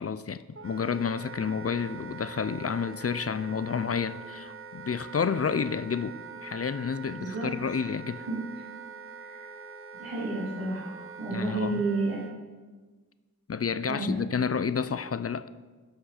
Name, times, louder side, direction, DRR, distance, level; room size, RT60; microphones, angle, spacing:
voice 1, 0.0-8.3 11.3-11.9 13.5-15.5, left 6 dB, 40° left, 14 dB, 0.4 m, -30 dB
Wind instrument woodwind instrument, 0.5-12.4, right 5 dB, 35° right, 0.7 m, -44 dB
voice 2, 8.3-8.6 9.1-9.5 10.0-12.2 13.9-14.2, right 2 dB, 90° right, -8 dB, 2.5 m, -31 dB
11.5 x 5.9 x 4.9 m, 1.3 s
wide cardioid pair, 40°, 36 cm